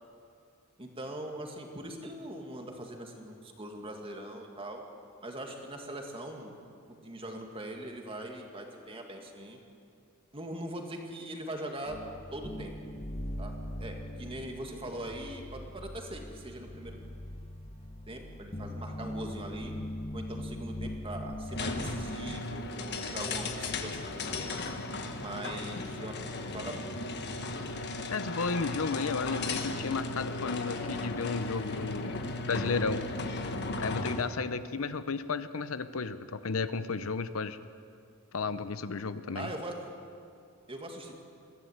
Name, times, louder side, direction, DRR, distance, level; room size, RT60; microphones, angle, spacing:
voice 1, 0.8-4.8 5.2-6.5 7.0-9.6 10.3-12.0 12.3-12.7 13.4-13.5 13.8-17.0 18.1-19.7 20.1-24.8 25.2-26.8 39.3-39.9 40.7-41.2, right 1 dB, 25° right, 2 dB, 2.2 m, -41 dB
sound 1, 11.9-22.4, left 1 dB, 30° left, 1.3 m, -41 dB
sound 2, 21.5-34.3, left 2 dB, 50° left, 1.5 m, -36 dB
voice 2, 27.8-32.2 32.5-33.0 33.8-37.6 38.3-39.5, left 4 dB, 70° left, 12 dB, 0.8 m, -33 dB
22.5 x 15.0 x 8.1 m, 2.4 s
head